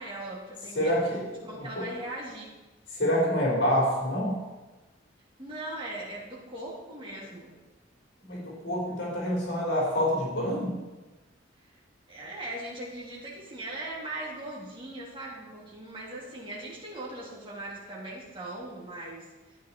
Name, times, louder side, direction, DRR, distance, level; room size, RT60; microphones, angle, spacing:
voice 1, 0.0-1.0 1.4-2.5 5.4-7.5 11.6-11.8 12.1-19.6, right 1 dB, 25° right, -5 dB, 3.1 m, -39 dB
voice 2, 0.8-1.5 1.8-1.9 3.0-4.4 8.3-10.8, equal, 60° left, -5 dB, 4.1 m, -27 dB
12.0 x 8.5 x 4.3 m, 1.2 s
head